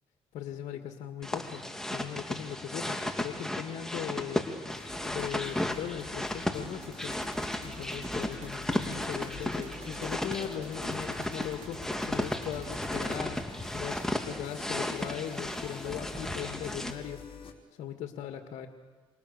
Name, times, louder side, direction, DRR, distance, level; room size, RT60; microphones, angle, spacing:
voice 1, 0.3-1.6 1.9-4.5 5.1-7.1 7.6-11.8 12.1-13.4 13.7-17.2 17.8-18.7, left 10 dB, 75° left, 5 dB, 2.1 m, -39 dB
sound 1, 1.2-16.9, left 1 dB, 5° left, 3.0 m, -35 dB
sound 2, 4.7-17.5, left 6 dB, 50° left, 4.3 m, -49 dB
sound 3, 6.8-13.3, right 7 dB, 80° right, 3.9 m, -52 dB
28.0 x 27.5 x 6.9 m, 1.3 s
cardioid pair, 85°, 12 cm